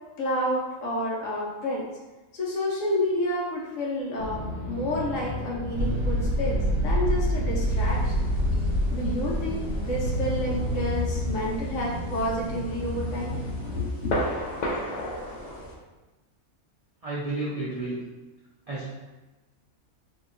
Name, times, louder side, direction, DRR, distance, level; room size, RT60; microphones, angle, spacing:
voice 1, 0.2-1.9 2.3-8.2 8.9-13.3 13.7-14.4, left 1 dB, 70° left, -3 dB, 1.0 m, -30 dB
sound 1, 4.2-13.8, left 1 dB, 40° left, 0.8 m, -34 dB
sound 2, 5.7-13.6, right 1 dB, 75° right, 1.2 m, -28 dB
sound 3, 7.6-15.7, left 1 dB, 85° left, 0.4 m, -37 dB
voice 2, 17.0-18.0 18.7-18.9, right 2 dB, 55° right, -9 dB, 0.4 m, -31 dB
2.8 x 2.8 x 2.6 m, 1.1 s
omnidirectional pair, 1.5 m